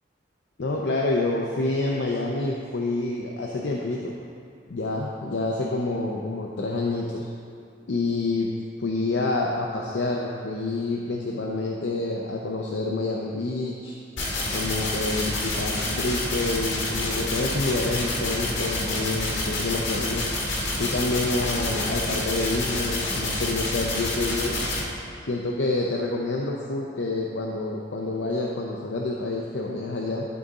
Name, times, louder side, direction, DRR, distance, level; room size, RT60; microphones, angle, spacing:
voice 1, 0.6-4.1 4.7-7.3 7.9-8.5 8.8-14.0 14.5-20.3 20.8-24.5 25.3-30.3, left 2 dB, 70° left, -2 dB, 0.6 m, -28 dB
sound 1, 14.2-24.8, left 2 dB, 90° left, 1.6 m, -28 dB
12.5 x 4.1 x 3.7 m, 2.4 s
head